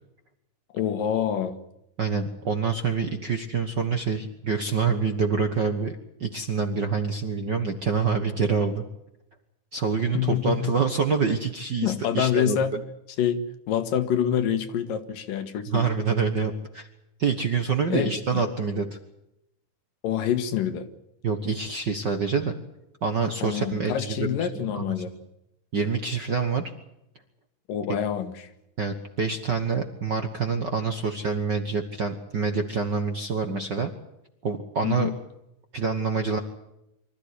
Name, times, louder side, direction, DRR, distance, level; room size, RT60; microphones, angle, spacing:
voice 1, 0.7-1.6 10.1-10.8 11.8-12.7 13.2-15.8 17.9-18.4 20.0-20.9 23.4-25.1 27.7-28.5 34.8-35.2, left 9 dB, 85° left, 9 dB, 3.2 m, -26 dB
voice 2, 2.0-5.9 6.2-8.8 9.7-12.6 15.7-16.9 17.2-19.0 21.2-22.6 23.0-24.3 24.5-24.9 25.7-26.7 28.8-33.9 34.4-35.1 35.7-36.4, right 5 dB, 55° right, 6 dB, 1.2 m, -26 dB
25.0 x 14.0 x 9.9 m, 0.87 s
omnidirectional pair, 3.8 m